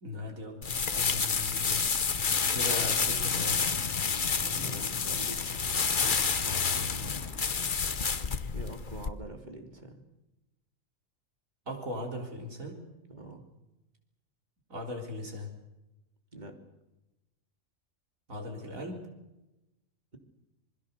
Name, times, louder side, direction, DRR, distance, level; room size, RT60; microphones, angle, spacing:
voice 1, 0.0-1.9 2.5-3.8 11.7-12.8 14.7-15.5 18.3-19.0, left 1 dB, 85° right, 1 dB, 4.2 m, -38 dB
sound 1, 0.6-9.1, left 5 dB, 40° left, 1.1 m, -29 dB
Mechanisms, 3.2-8.4, equal, 15° left, 5.0 m, -52 dB
voice 2, 4.3-5.4 6.3-7.0 8.5-10.0 13.0-13.5 16.3-16.5, right 2 dB, 35° right, 4 dB, 2.9 m, -45 dB
27.0 x 21.0 x 6.8 m, 0.98 s
omnidirectional pair, 1.4 m